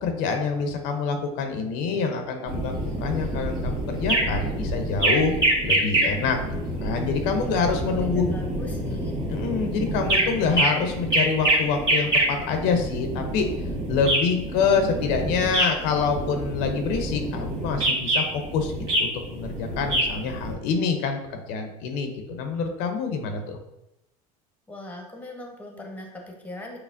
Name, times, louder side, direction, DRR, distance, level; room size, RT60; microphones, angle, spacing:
voice 1, 0.0-2.7 3.0-5.3 5.6-6.4 6.8-8.2 9.3-13.5 13.9-18.2 18.5-18.7 19.0-23.6, left 5 dB, 65° left, 5 dB, 0.6 m, -26 dB
sound 1, 2.5-20.5, right 1 dB, 25° right, 1.4 m, -26 dB
voice 2, 7.7-9.2 24.7-26.8, left 1 dB, 10° left, 1 dB, 0.7 m, -40 dB
5.7 x 2.0 x 2.5 m, 0.88 s
supercardioid pair, 105°, 19 cm